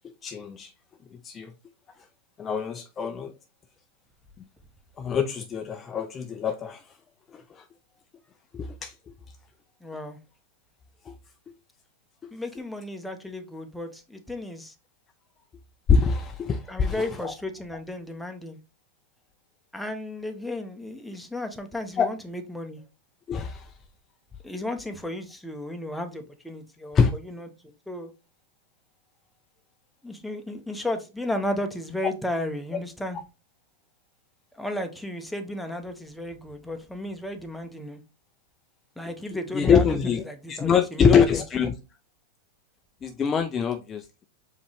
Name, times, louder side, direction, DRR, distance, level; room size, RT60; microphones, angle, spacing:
voice 1, 0.2-0.7 1.2-1.5 2.4-3.3 5.0-6.8 7.3-7.6 8.5-8.9 11.1-11.2 15.9-17.3 22.0-22.1 23.3-23.7 26.9-27.1 39.5-40.2 40.5-41.7 43.0-44.2, left 6 dB, 25° left, 0.4 m, -24 dB
voice 2, 9.8-10.2 12.3-14.7 16.7-18.6 19.7-22.8 24.4-27.5 27.9-28.1 30.0-33.2 34.5-38.0 39.0-40.0 40.2-41.4, left 1 dB, ahead, 0.8 m, -34 dB
5.0 x 3.0 x 3.3 m
hypercardioid pair, 115°, 0 cm